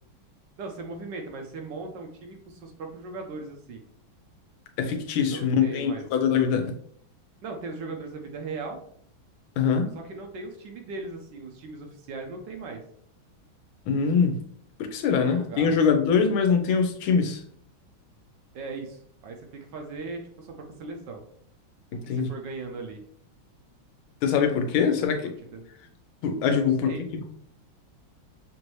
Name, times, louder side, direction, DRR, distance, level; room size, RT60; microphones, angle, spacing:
voice 1, 0.6-3.8 5.2-6.0 7.4-8.8 9.9-12.8 15.1-15.7 18.5-21.2 21.9-23.0 24.8-25.7 26.5-27.0, right 3 dB, 70° right, 3 dB, 1.2 m, -38 dB
voice 2, 4.8-6.7 9.6-9.9 13.9-14.4 14.8-17.4 21.9-22.3 24.2-25.3 26.2-27.3, left 6 dB, 90° left, 5 dB, 1.5 m, -23 dB
6.2 x 2.6 x 3.1 m, 0.62 s
omnidirectional pair, 2.2 m